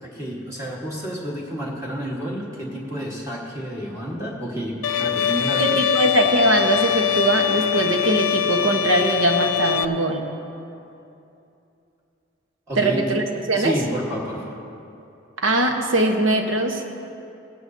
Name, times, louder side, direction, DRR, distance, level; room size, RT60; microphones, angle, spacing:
voice 1, 0.0-5.7 12.7-13.1 13.5-14.6, equal, 15° right, -4 dB, 1.4 m, -30 dB
Bowed string instrument, 4.8-9.9, left 9 dB, 90° left, 0.4 m, -22 dB
voice 2, 5.6-10.2 12.8-13.7 15.4-16.9, right 1 dB, 80° right, 3 dB, 1.1 m, -21 dB
16.5 x 12.5 x 2.7 m, 2.8 s
head